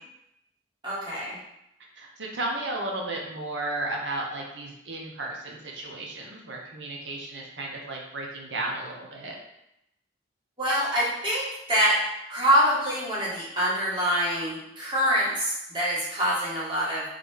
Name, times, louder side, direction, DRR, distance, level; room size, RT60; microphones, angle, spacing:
voice 1, 0.8-1.4 10.6-12.0 12.3-17.0, equal, 25° right, -8 dB, 1.5 m, -25 dB
voice 2, 1.9-9.4, right 2 dB, 70° right, -1 dB, 0.9 m, -34 dB
3.9 x 3.3 x 3.4 m, 0.84 s
head